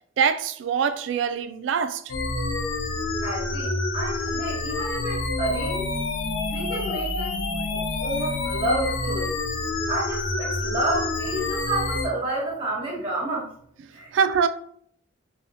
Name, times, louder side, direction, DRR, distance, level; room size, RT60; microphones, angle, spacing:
voice 1, 0.2-2.0 14.1-14.5, right 6 dB, 70° right, 0.3 m, -23 dB
sound 1, 2.1-12.1, left 3 dB, 80° left, 0.5 m, -28 dB
voice 2, 3.2-5.9 6.5-7.3 7.7-9.4 9.9-13.5 13.9-14.1, right 1 dB, 30° right, 0.9 m, -30 dB
3.4 x 2.3 x 2.6 m
head